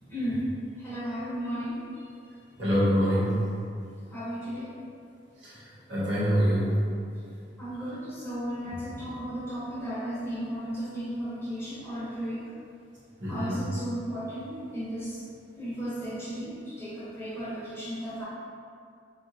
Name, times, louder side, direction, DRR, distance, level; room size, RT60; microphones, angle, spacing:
voice 1, 0.0-1.8 3.1-3.2 4.1-4.8 7.6-12.5 13.3-15.2 15.6-18.2, equal, 15° left, -11 dB, 0.7 m, -34 dB
voice 2, 2.6-3.3 5.4-5.6 5.9-6.7 13.2-13.6, equal, 70° right, -9 dB, 0.9 m, -25 dB
2.7 x 2.4 x 2.6 m, 2.3 s
head